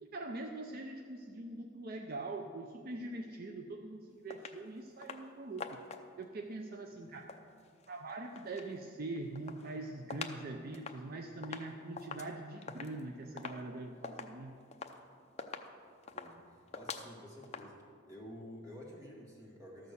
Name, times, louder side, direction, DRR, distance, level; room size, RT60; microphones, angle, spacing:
voice 1, 0.0-5.8 6.2-7.3 7.9-14.5, right 2 dB, 50° right, 4 dB, 0.5 m, -43 dB
sound 1, 4.3-4.6 5.0-5.3 5.6-6.2 7.1-8.7 9.1-10.4 10.7-17.6, left 5 dB, 35° left, 0.6 m, -46 dB
voice 2, 16.1-17.8 18.1-19.9, equal, 20° right, -3 dB, 2.1 m, -51 dB
13.0 x 6.4 x 6.9 m, 2.3 s
head